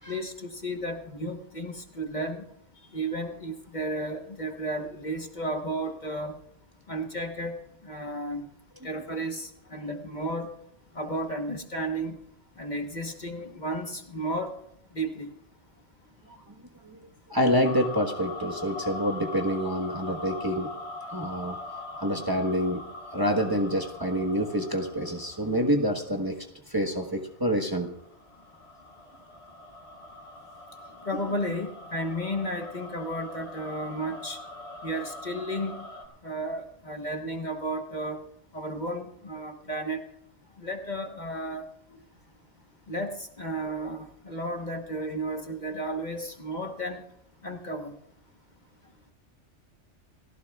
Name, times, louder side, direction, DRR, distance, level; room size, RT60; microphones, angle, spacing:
voice 1, 0.1-2.4 2.9-6.4 6.9-7.6 7.8-8.5 8.8-10.5 10.9-12.2 12.6-14.5 14.9-15.3 31.0-34.4 34.8-35.8 36.2-38.2 38.5-40.0 40.6-41.6 42.9-47.0 47.4-47.9, right 1 dB, 40° left, 4 dB, 1.2 m, -33 dB
voice 2, 17.3-20.7 21.1-21.6 22.0-22.8 23.1-28.0, equal, 20° right, 2 dB, 1.2 m, -27 dB
sound 1, 17.6-26.3 27.4-36.0, left 2 dB, 60° left, 2.5 m, -42 dB
29.5 x 15.0 x 2.4 m, 0.74 s
omnidirectional pair, 1.2 m